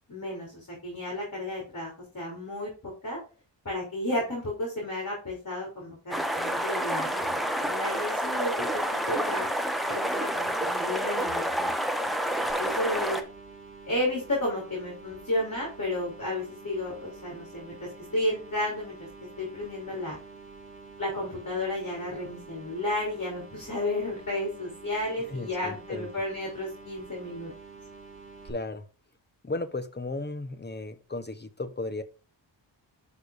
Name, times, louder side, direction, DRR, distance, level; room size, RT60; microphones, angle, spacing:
voice 1, 0.1-3.2 3.6-9.5 9.9-11.8 12.0-12.1 12.4-13.2 13.9-17.7 18.1-19.1 19.4-20.2 21.0-27.5, left 1 dB, 40° left, -2 dB, 4.5 m, -32 dB
sound 1, 6.1-13.2, equal, ahead, 1.1 m, -29 dB
sound 2, 12.5-28.5, right 4 dB, 25° right, 3.3 m, -48 dB
voice 2, 25.3-26.1 28.4-28.8 29.4-32.0, left 2 dB, 20° left, 10 dB, 1.0 m, -35 dB
11.5 x 5.3 x 2.6 m, 0.33 s
wide cardioid pair, 125°, 46 cm